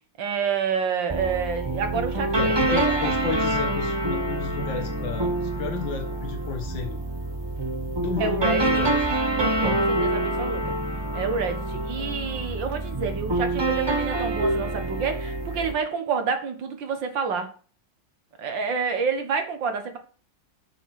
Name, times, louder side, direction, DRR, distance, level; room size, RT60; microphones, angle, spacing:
voice 1, 0.2-3.1 8.2-8.7 9.4-10.7 11.1-17.5 18.4-20.0, right 6 dB, 70° right, 6 dB, 2.1 m, -28 dB
sound 1, 1.1-15.7, right 1 dB, 20° right, 0.7 m, -26 dB
voice 2, 2.4-7.0 8.0-9.2 9.6-9.9, left 5 dB, 70° left, 3 dB, 2.2 m, -32 dB
7.8 x 7.5 x 4.8 m, 0.38 s
omnidirectional pair, 2.1 m